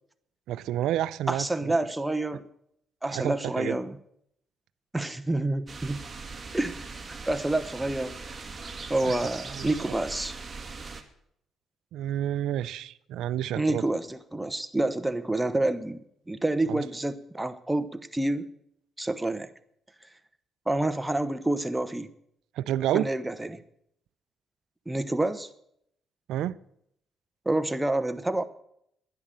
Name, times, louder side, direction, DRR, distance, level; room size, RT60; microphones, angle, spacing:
voice 1, 0.5-1.7 3.1-3.8 9.0-9.2 9.5-9.7 11.9-13.8 16.7-16.8 22.6-23.1 26.3-26.6, right 12 dB, 85° right, 17 dB, 0.5 m, -29 dB
voice 2, 1.3-2.4 3.0-4.0 4.9-6.0 6.5-6.8 7.3-8.2 8.9-10.4 13.5-16.0 16.3-18.5 19.0-19.5 20.7-22.1 22.9-23.6 24.9-25.5 27.4-28.4, right 2 dB, 10° right, 10 dB, 1.0 m, -28 dB
sound 1, 5.7-11.0, right 4 dB, 25° right, 2.0 m, -40 dB
10.5 x 10.5 x 7.5 m, 0.72 s
cardioid pair, 90°, 0 cm